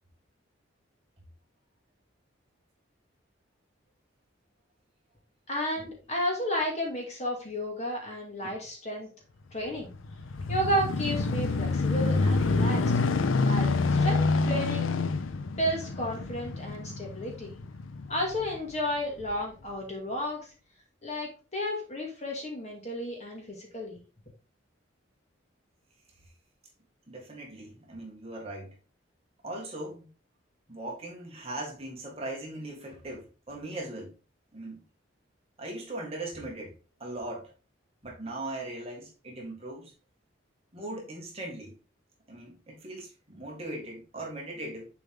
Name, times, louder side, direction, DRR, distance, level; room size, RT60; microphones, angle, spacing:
voice 1, 5.5-9.1 9.5-9.9 10.5-12.9 13.4-14.9 15.5-17.5 18.1-20.5 21.0-24.0, equal, 35° left, 2.2 m, -32 dB
sound 1, 9.8-18.6 19.2-19.3, left 3 dB, 90° left, 0.6 m, -27 dB
voice 2, 27.1-28.7 29.4-30.1 30.7-34.1 34.5-34.8 35.6-36.7 37.0-37.5 38.0-39.9 40.7-41.7 42.3-44.9, right 1 dB, 30° right, 2.0 m, -39 dB
7.0 x 4.7 x 3.7 m
head